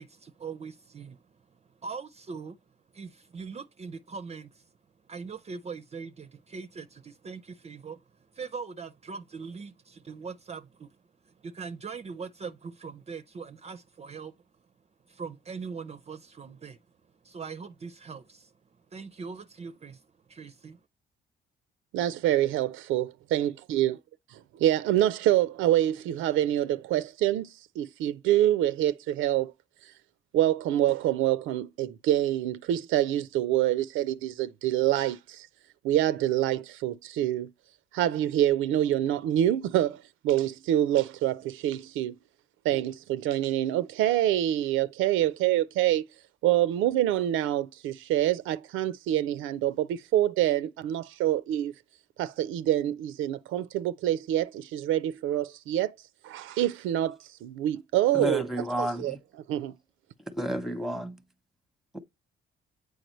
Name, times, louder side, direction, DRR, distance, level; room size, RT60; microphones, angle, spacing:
voice 1, 0.0-2.6 2.9-4.7 5.1-11.0 11.2-14.3 15.1-16.8 17.2-18.6 18.9-20.8, right 5 dB, 35° right, 0.5 m, -41 dB
voice 2, 21.9-23.9 24.5-27.5 27.8-29.5 30.3-35.5 35.8-37.5 37.9-42.1 42.6-46.1 46.4-51.7 52.2-56.0 56.2-58.4 58.8-59.2 59.5-59.7, right 12 dB, 90° right, 0.4 m, -26 dB
voice 3, 58.1-59.2 60.3-61.2 61.9-62.0, equal, ahead, 0.8 m, -31 dB
7.8 x 4.7 x 3.0 m
cardioid pair, 90°, 20 cm